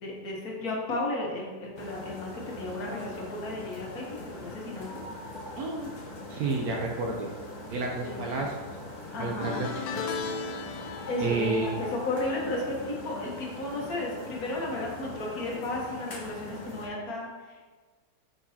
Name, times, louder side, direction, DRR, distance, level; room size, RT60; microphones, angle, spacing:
voice 1, 0.0-5.0 8.0-8.4 9.1-9.6 11.1-17.7, left 2 dB, 55° left, -2 dB, 1.4 m, -34 dB
sound 1, 1.8-16.9, left 2 dB, 35° left, 0.8 m, -42 dB
voice 2, 5.6-5.9 6.3-7.3 7.7-8.6 9.2-10.3 11.2-11.8, right 3 dB, 65° right, 0 dB, 1.0 m, -30 dB
sound 2, 9.4-14.8 15.1-15.5 16.7-16.8, left 5 dB, 75° left, 1.2 m, -39 dB
6.4 x 5.2 x 2.8 m, 1.4 s
omnidirectional pair, 2.0 m